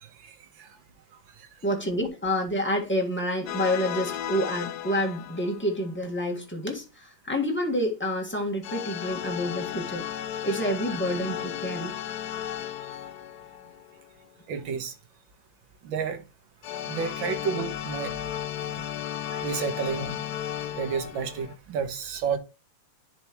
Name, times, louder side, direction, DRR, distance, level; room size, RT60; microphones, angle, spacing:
voice 1, 0.2-0.7 14.5-14.9 15.8-16.2 16.9-18.1 19.3-20.2 20.7-22.4, right 6 dB, 65° right, 1.9 m, -31 dB
voice 2, 1.6-10.0 10.4-12.0 18.8-18.9, equal, 5° left, 1.4 m, -28 dB
sound 1, 3.5-5.9 8.6-14.3 16.6-21.5, left 11 dB, 75° left, 0.9 m, -34 dB
10.5 x 4.7 x 3.0 m
omnidirectional pair, 2.4 m